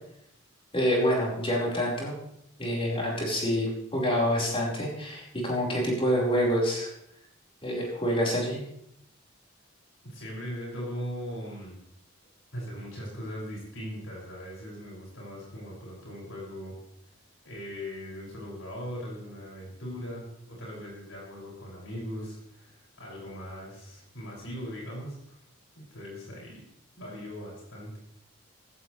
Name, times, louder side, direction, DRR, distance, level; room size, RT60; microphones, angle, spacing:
voice 1, 0.7-2.1 2.6-6.9 7.6-8.6, equal, 25° left, -4 dB, 5.0 m, -27 dB
voice 2, 10.0-11.8 12.5-16.7 17.4-25.4 25.7-26.6 27.0-27.9, equal, 75° left, -4 dB, 6.8 m, -39 dB
15.5 x 15.0 x 3.4 m, 0.75 s
head